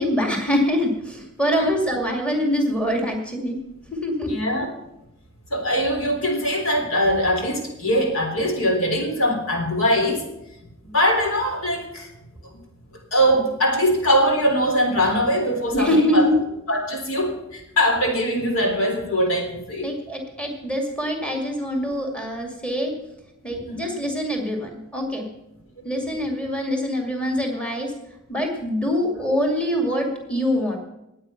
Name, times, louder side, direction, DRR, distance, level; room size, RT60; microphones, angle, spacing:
voice 1, 0.0-3.6 3.9-4.3 15.7-16.4 19.8-22.9 23.4-25.2 25.8-27.9 28.3-30.8, equal, 5° left, 2 dB, 2.3 m, -24 dB
voice 2, 4.3-4.7 5.5-10.3 10.8-12.1 12.4-12.6 13.1-16.3 16.7-19.9 23.7-23.8 25.8-25.9, equal, 80° left, 3 dB, 3.9 m, -22 dB
19.5 x 8.8 x 5.9 m, 0.89 s
head